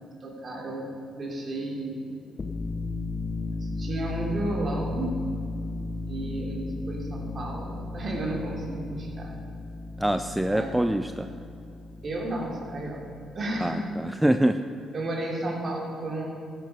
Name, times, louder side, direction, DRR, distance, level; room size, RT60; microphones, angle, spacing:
voice 1, 0.2-0.9 1.1-2.0 3.6-5.2 6.1-9.3 10.5-10.7 12.0-13.0 13.3-13.8 14.9-16.2, right 1 dB, 45° right, -1 dB, 3.2 m, -32 dB
sound 1, 2.3-13.8, left 3 dB, 30° left, 0.8 m, -35 dB
voice 2, 10.0-11.3 13.6-14.6, right 1 dB, 5° right, 9 dB, 0.4 m, -25 dB
13.0 x 9.2 x 5.6 m, 2.5 s
cardioid pair, 90°, 0 cm